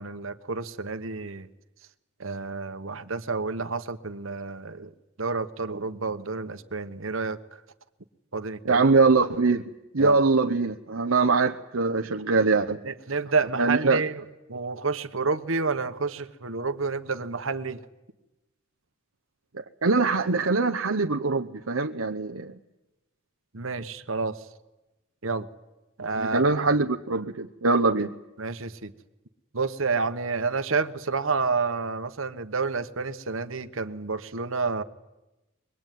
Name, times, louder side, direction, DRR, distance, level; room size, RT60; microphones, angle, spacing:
voice 1, 0.0-1.5 2.2-4.9 5.2-7.4 8.3-8.8 10.0-10.2 12.8-17.8 23.5-24.4 25.2-25.5 26.0-26.5 28.4-28.9 29.5-34.8, right 4 dB, 70° right, 9 dB, 1.3 m, -29 dB
voice 2, 8.6-9.6 9.9-12.8 13.6-14.0 19.5-22.5 26.2-28.1, right 3 dB, 90° right, 3 dB, 1.0 m, -23 dB
24.0 x 21.5 x 9.3 m, 1.0 s
head